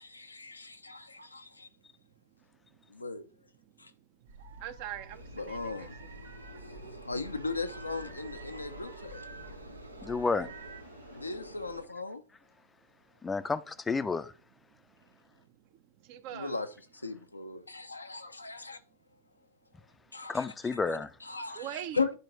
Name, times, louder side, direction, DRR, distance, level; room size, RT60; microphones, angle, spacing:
voice 1, 0.0-1.7 2.9-3.2 3.8-3.9 5.4-6.0 6.6-9.3 11.1-12.2 16.3-18.8 20.1-20.4 20.7-21.7 21.9-22.1, left 4 dB, 80° left, 0.6 m, -37 dB
voice 2, 1.6-3.0 3.7-6.1 14.7-15.5 16.0-16.6 20.0-20.1 21.5-22.0, right 11 dB, 45° right, 0.7 m, -45 dB
sound 1, 4.2-10.8, right 3 dB, 65° right, 1.0 m, -49 dB
sound 2, 5.1-11.9, right 1 dB, 85° right, 0.8 m, -49 dB
voice 3, 10.0-10.5 13.2-14.3 20.3-21.1, left 4 dB, 15° left, 0.5 m, -31 dB
11.0 x 4.5 x 3.0 m
figure-of-eight pair, 90°, 0 cm